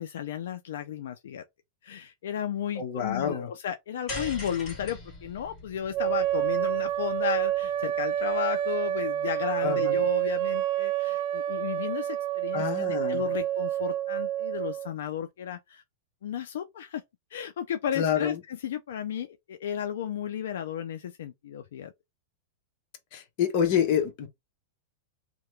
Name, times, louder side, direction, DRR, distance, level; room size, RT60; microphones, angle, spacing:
voice 1, 0.0-1.4 1.8-15.8 16.2-17.0 17.3-21.9, left 9 dB, 80° left, 0.4 m, -34 dB
voice 2, 2.8-3.5 9.6-10.0 12.5-13.3 17.9-18.4 23.1-24.3, left 8 dB, 45° left, 0.9 m, -27 dB
sound 1, 4.1-8.5, left 2 dB, 25° left, 1.5 m, -41 dB
sound 2, 5.9-14.9, right 12 dB, 45° right, 0.3 m, -28 dB
2.8 x 2.2 x 3.1 m
supercardioid pair, 155°, 0 cm